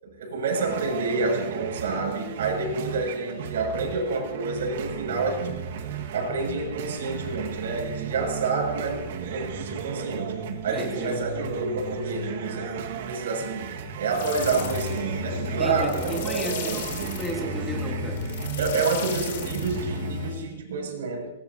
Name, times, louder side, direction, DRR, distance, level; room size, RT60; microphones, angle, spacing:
voice 1, 0.0-5.5 6.1-16.8 18.6-21.3, right 3 dB, 85° right, 0 dB, 6.7 m, -29 dB
sound 1, 0.5-20.3, right 7 dB, 60° right, 1.6 m, -35 dB
voice 2, 10.7-11.2 15.5-18.3, right 1 dB, ahead, -1 dB, 1.5 m, -34 dB
sound 2, 14.1-20.4, left 5 dB, 50° left, 4.6 m, -34 dB
23.5 x 20.0 x 2.8 m, 1.1 s
supercardioid pair, 175°, 0 cm